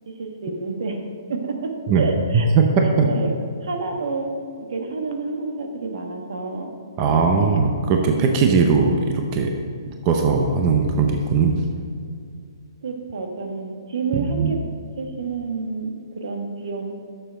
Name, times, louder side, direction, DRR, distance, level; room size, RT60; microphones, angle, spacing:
voice 1, 0.1-2.5 3.0-6.7 7.3-7.6 12.8-14.7 15.0-17.0, right 3 dB, 75° right, 4 dB, 1.3 m, -29 dB
voice 2, 2.5-3.1 7.0-9.5 9.8-11.6 14.3-14.5, right 5 dB, 30° right, 3 dB, 0.7 m, -19 dB
7.5 x 6.8 x 5.2 m, 2.2 s
hypercardioid pair, 155°, 3 cm